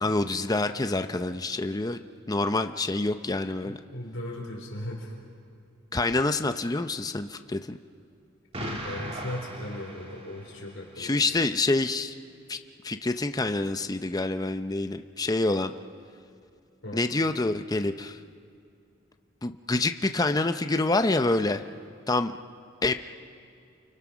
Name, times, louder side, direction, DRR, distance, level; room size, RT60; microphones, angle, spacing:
voice 1, 0.0-2.0 2.3-3.8 5.9-7.8 11.0-12.1 12.5-12.6 12.8-15.7 16.9-18.2 19.4-21.6 22.1-22.4 22.8-22.9, left 2 dB, 20° left, 8 dB, 0.6 m, -27 dB
voice 2, 3.6-5.1 8.6-11.2 16.8-17.0, left 1 dB, 70° left, -1 dB, 4.6 m, -37 dB
Explosion, 8.5-10.7, right 1 dB, 30° right, 2.4 m, -37 dB
29.5 x 24.0 x 6.2 m, 2.5 s
head